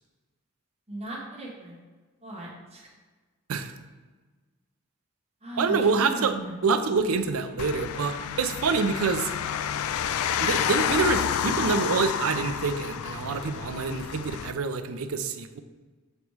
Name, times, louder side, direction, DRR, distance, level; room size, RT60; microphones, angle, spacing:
voice 1, 0.9-1.8 2.2-2.9 5.4-6.6, right 2 dB, 30° right, -3 dB, 1.3 m, -37 dB
voice 2, 5.6-6.4 6.6-9.3 10.4-15.6, right 4 dB, 85° right, 9 dB, 0.5 m, -26 dB
sound 1, 7.6-14.5, left 8 dB, 85° left, 0.3 m, -29 dB
6.8 x 3.0 x 4.7 m, 1.3 s
head